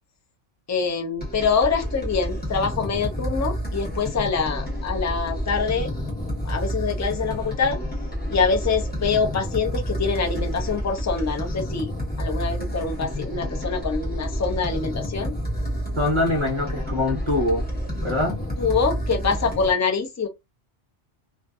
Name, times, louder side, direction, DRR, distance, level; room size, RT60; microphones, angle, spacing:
voice 1, 0.7-5.9 6.5-7.8 8.3-11.9 12.2-15.3 18.6-20.3, left 5 dB, 25° left, 0.3 m, -25 dB
sound 1, 1.2-19.7, equal, 10° left, 0.9 m, -29 dB
voice 2, 16.0-17.6 18.0-18.4, left 1 dB, 30° right, 0.7 m, -23 dB
2.6 x 2.4 x 2.3 m
omnidirectional pair, 1.2 m